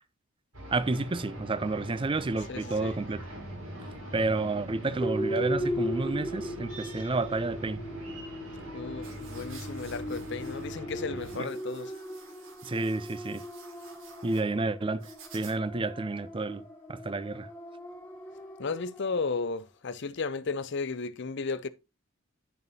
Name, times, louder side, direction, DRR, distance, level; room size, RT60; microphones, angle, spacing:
sound 1, 0.5-11.4, right 1 dB, 80° right, 5.3 m, -43 dB
voice 1, 0.7-3.2 4.1-7.8 11.3-11.5 12.6-13.4 14.2-17.5, right 3 dB, 25° right, 0.4 m, -30 dB
voice 2, 2.5-2.9 8.7-11.9 18.6-21.7, left 4 dB, 55° left, 0.6 m, -34 dB
sound 2, 5.0-19.2, equal, 10° left, 2.3 m, -38 dB
sound 3, 9.0-15.8, right 5 dB, 65° right, 1.8 m, -53 dB
10.5 x 6.8 x 2.7 m
head